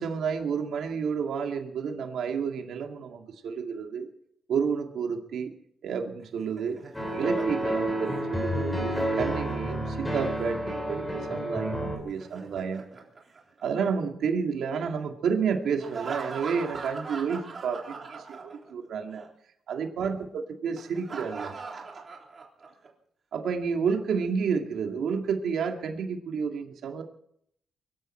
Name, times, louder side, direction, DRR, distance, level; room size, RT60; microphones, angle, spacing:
voice 1, 0.0-4.1 4.5-5.5 5.8-6.8 7.1-12.8 13.6-19.2 19.7-21.5 23.3-27.0, right 6 dB, 70° right, 3 dB, 2.2 m, -30 dB
Laughter, 6.2-10.3 12.0-14.1 15.8-18.9 19.1-19.3 20.8-22.9, right 4 dB, 35° right, 3.6 m, -41 dB
sound 1, 6.9-12.0, right 1 dB, 10° left, 3.8 m, -30 dB
24.0 x 13.5 x 4.5 m, 0.70 s
cardioid pair, 135°, 0 cm